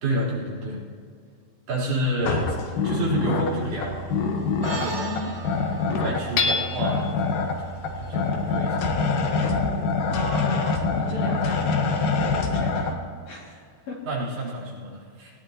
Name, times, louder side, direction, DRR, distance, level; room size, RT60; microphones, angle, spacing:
voice 1, 0.0-0.8 1.7-2.6 2.8-4.1 4.6-5.1 5.9-7.5 8.0-8.9 11.0-11.2 14.0-15.3, right 1 dB, 75° right, -7 dB, 5.9 m, -29 dB
sound 1, 2.2-12.9, left 4 dB, 65° left, 2.7 m, -25 dB
sound 2, 4.6-9.3, right 4 dB, 30° right, 3.0 m, -40 dB
voice 2, 4.9-5.3 10.1-11.7 12.2-13.0 13.3-13.6 13.9-14.0, left 3 dB, 45° left, -4 dB, 3.3 m, -34 dB
Hammer / Chink clink, 6.4-7.2, left 4 dB, 90° left, 3.2 m, -25 dB
20.0 x 17.0 x 3.0 m, 2.1 s
omnidirectional pair, 4.7 m